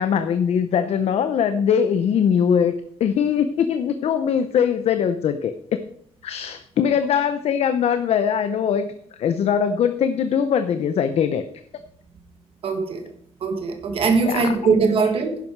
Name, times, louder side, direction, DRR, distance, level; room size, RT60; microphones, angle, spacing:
voice 1, 0.0-5.8 6.2-8.9 9.2-11.4 14.3-14.6, left 7 dB, 70° left, 9 dB, 0.7 m, -21 dB
voice 2, 12.6-13.0 13.4-15.4, right 4 dB, 55° right, 6 dB, 1.7 m, -21 dB
11.0 x 11.0 x 4.6 m, 0.65 s
wide cardioid pair, 180°, 11 cm